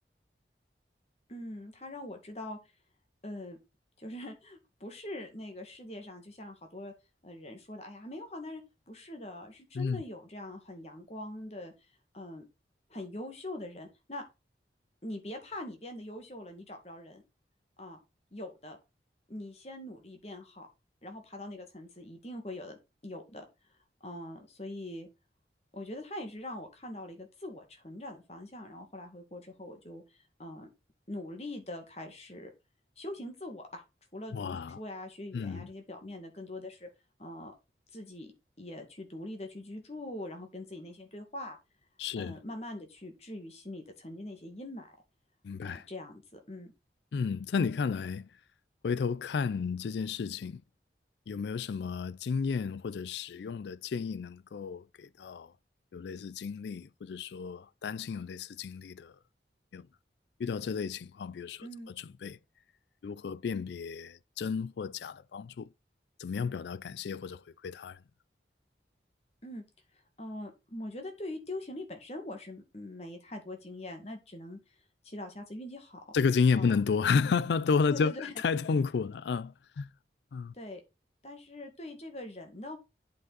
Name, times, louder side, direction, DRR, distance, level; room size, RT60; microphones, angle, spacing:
voice 1, 1.3-2.6 3.2-3.6 4.0-6.9 7.2-8.6 8.9-11.7 12.1-12.4 12.9-14.2 15.0-17.2 17.8-18.0 18.3-18.8 19.3-20.7 21.0-22.7 23.0-23.4 24.0-25.1 25.7-30.7 31.1-32.5 33.0-33.8 34.1-36.9 37.2-37.5 37.9-38.3 38.6-41.6 42.2-45.0 45.6-46.7 61.6-61.9 69.4-69.6 70.2-74.6 75.0-76.0 76.5-76.8 77.9-78.3 80.5-80.8 81.2-82.8, left 1 dB, 35° left, 2.0 m, -43 dB
voice 2, 34.3-34.8 35.3-35.7 42.0-42.3 45.4-45.9 47.1-48.3 48.8-50.6 51.3-55.5 55.9-59.2 59.7-59.9 60.4-61.7 62.0-62.4 63.0-65.7 66.2-68.0 76.1-79.9 80.3-80.5, left 5 dB, 75° left, 0.4 m, -32 dB
8.4 x 5.2 x 4.0 m
head